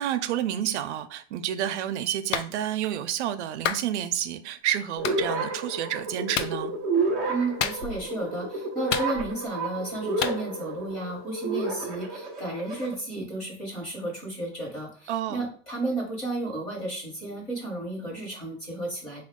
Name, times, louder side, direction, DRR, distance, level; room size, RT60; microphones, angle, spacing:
voice 1, 0.0-6.7 15.1-15.5, right 11 dB, 75° right, 0.5 m, -29 dB
Clapping, 2.3-2.5 3.7-3.9 5.0-5.2 6.3-6.6 7.6-8.1 8.9-9.5 10.2-10.4, left 8 dB, 90° left, 0.6 m, -29 dB
sound 1, 5.0-12.9, right 3 dB, ahead, 0.5 m, -31 dB
voice 2, 7.3-19.2, right 2 dB, 20° left, 1.2 m, -33 dB
5.0 x 2.3 x 3.6 m
supercardioid pair, 180°, 35 cm